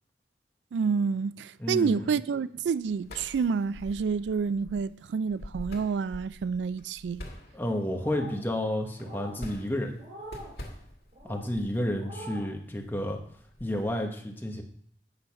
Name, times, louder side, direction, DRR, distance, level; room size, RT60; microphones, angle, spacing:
voice 1, 0.7-7.2, right 5 dB, 85° right, 0.3 m, -28 dB
voice 2, 1.6-2.0 7.5-10.0 11.2-13.2 13.6-14.6, left 1 dB, 10° left, 1.1 m, -31 dB
sound 1, 2.6-13.9, left 1 dB, 60° left, 2.1 m, -47 dB
sound 2, 7.9-8.5 9.0-9.4 10.0-10.5 11.1-11.5 11.9-12.5, right 1 dB, 45° right, 3.1 m, -44 dB
8.7 x 6.4 x 5.8 m
head